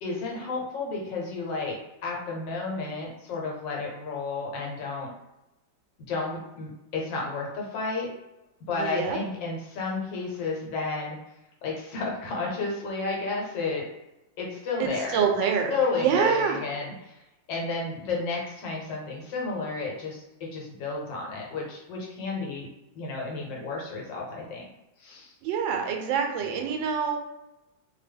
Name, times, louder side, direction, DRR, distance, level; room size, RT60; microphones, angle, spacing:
voice 1, 0.0-5.1 6.1-8.1 8.6-11.2 11.6-13.9 14.4-17.1 17.5-22.7 22.9-24.7 25.0-25.3, left 3 dB, 80° left, -2 dB, 1.5 m, -32 dB
voice 2, 8.7-9.2 14.8-16.6 25.4-27.2, right 7 dB, 90° right, 4 dB, 1.3 m, -26 dB
3.3 x 2.1 x 3.4 m, 0.92 s
omnidirectional pair, 2.0 m